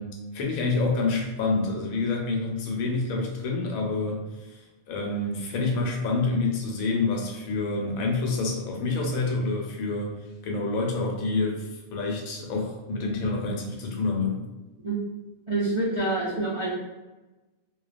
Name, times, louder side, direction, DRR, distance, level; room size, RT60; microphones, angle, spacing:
voice 1, 0.0-4.6 4.9-10.1 10.4-14.4, left 3 dB, 85° left, 0 dB, 1.0 m, -27 dB
voice 2, 15.5-16.7, right 2 dB, 55° right, -10 dB, 0.3 m, -26 dB
2.4 x 2.2 x 2.4 m, 1.1 s
omnidirectional pair, 1.5 m